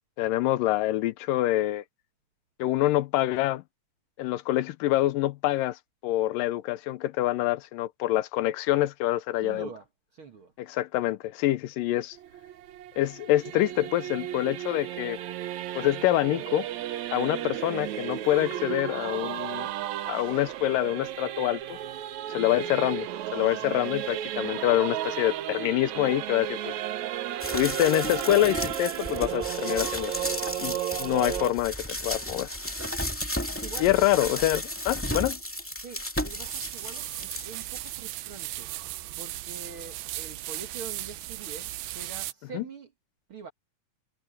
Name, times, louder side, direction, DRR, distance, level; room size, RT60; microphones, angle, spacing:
voice 1, 0.2-1.8 2.6-3.6 4.2-9.7 10.6-12.2 13.0-15.2 15.8-16.7 17.1-19.7 20.1-21.8 22.3-26.7 27.5-30.1 30.6-32.5 33.8-35.4 42.5-42.6, left 15 dB, 80° left, 2.3 m, -26 dB
voice 2, 9.4-10.5 23.6-24.1 33.6-34.1 35.7-38.7 39.2-42.9 43.3-43.5, right 4 dB, 45° right, 2.0 m, -44 dB
Singing / Musical instrument, 12.1-31.5, right 12 dB, 70° right, 1.9 m, -34 dB
sound 1, 27.4-38.0 38.4-38.5, left 1 dB, 5° left, 1.6 m, -34 dB
sound 2, 36.3-42.3, right 16 dB, 85° right, 2.5 m, -37 dB
omnidirectional pair, 4.0 m